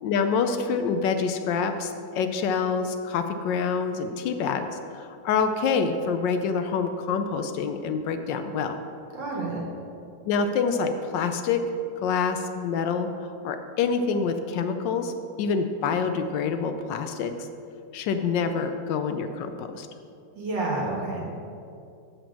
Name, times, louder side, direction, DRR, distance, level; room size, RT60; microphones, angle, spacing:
voice 1, 0.0-8.8 10.3-11.6 12.0-15.1 15.4-17.5 17.9-19.9, left 5 dB, 75° left, 7 dB, 1.2 m, -26 dB
voice 2, 9.1-9.6 20.4-21.2, right 2 dB, 70° right, -2 dB, 2.2 m, -29 dB
7.5 x 5.1 x 7.3 m, 2.5 s
omnidirectional pair, 2.1 m